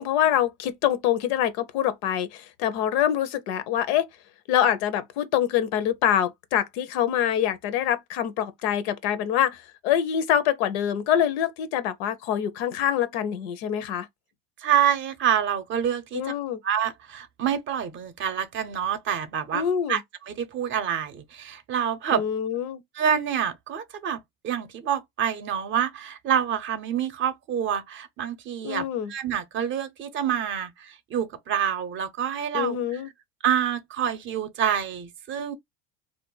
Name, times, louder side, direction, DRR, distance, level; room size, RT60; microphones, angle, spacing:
voice 1, 0.0-4.1 4.5-14.1 16.1-16.6 19.5-20.0 22.1-22.8 28.6-29.1 32.5-33.1, left 10 dB, 80° left, 0.7 m, -25 dB
voice 2, 14.6-16.2 16.6-22.2 22.9-24.2 24.4-33.0 33.4-35.5, right 9 dB, 40° right, 0.6 m, -27 dB
2.5 x 2.2 x 3.8 m
supercardioid pair, 120°, 31 cm